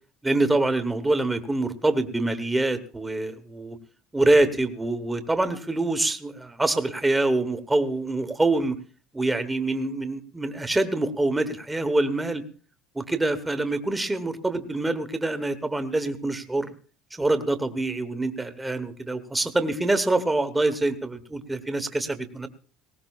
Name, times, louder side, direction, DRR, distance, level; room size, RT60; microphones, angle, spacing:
voice 1, 0.2-3.8 4.1-8.8 9.1-12.4 12.9-16.7 17.2-22.5, right 2 dB, 5° right, 9 dB, 0.9 m, -25 dB
19.5 x 18.0 x 2.4 m, 0.40 s
cardioid pair, 170°, 0 cm